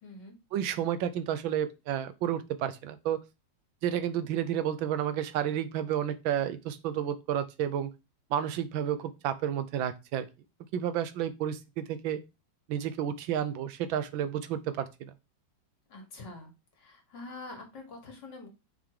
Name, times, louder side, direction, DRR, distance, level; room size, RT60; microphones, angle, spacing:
voice 1, 0.0-0.4 15.9-16.5 16.8-18.5, left 2 dB, 65° left, 3 dB, 2.3 m, -45 dB
voice 2, 0.5-3.2 3.8-7.9 8.3-10.3 10.7-12.2 12.7-15.1, right 10 dB, 80° right, 12 dB, 1.5 m, -31 dB
5.8 x 3.7 x 4.8 m, 0.25 s
omnidirectional pair, 2.1 m